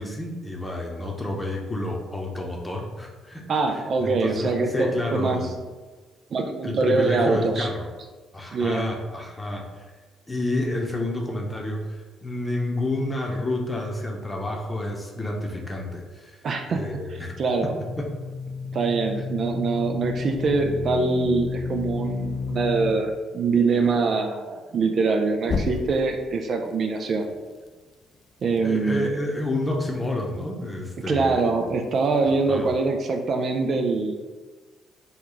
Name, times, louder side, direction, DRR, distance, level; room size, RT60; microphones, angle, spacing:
voice 1, 0.0-3.4 3.7-5.6 6.6-7.9 8.3-9.8 10.3-16.4 16.7-17.4 18.0-18.1 19.4-19.5 28.6-31.5 32.5-32.7, left 1 dB, 20° left, 0 dB, 0.7 m, -29 dB
voice 2, 3.5-5.4 6.3-7.7 8.5-8.9 16.4-17.7 18.7-27.3 28.4-29.1 31.1-34.2, right 4 dB, 55° right, 4 dB, 0.4 m, -24 dB
sound 1, 17.1-22.9 25.4-26.2, left 4 dB, 50° left, 0.4 m, -31 dB
3.0 x 2.3 x 3.8 m, 1.3 s
hypercardioid pair, 55°, 0 cm